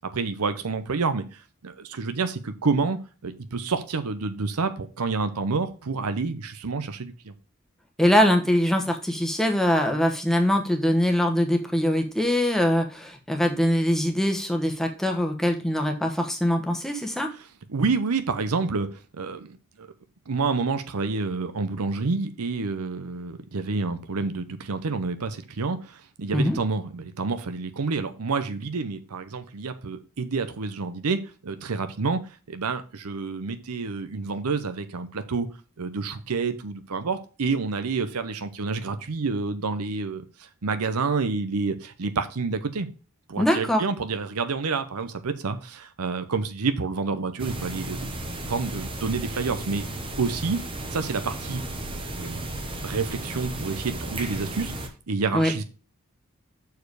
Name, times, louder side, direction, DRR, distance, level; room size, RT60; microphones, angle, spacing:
voice 1, 0.1-7.3 17.3-19.9 20.3-32.2 32.5-35.5 35.8-42.9 43.3-48.1 48.4-49.9 50.2-50.6 50.9-51.6 52.1-52.5 52.8-54.7 55.1-55.6, right 4 dB, 90° right, 9 dB, 0.7 m, -28 dB
voice 2, 8.0-17.3 26.3-26.6 43.4-43.8 55.3-55.5, equal, ahead, 3 dB, 1.0 m, -23 dB
sound 1, 47.4-54.9, right 1 dB, 25° right, 0.9 m, -34 dB
6.8 x 4.7 x 4.7 m, 0.34 s
head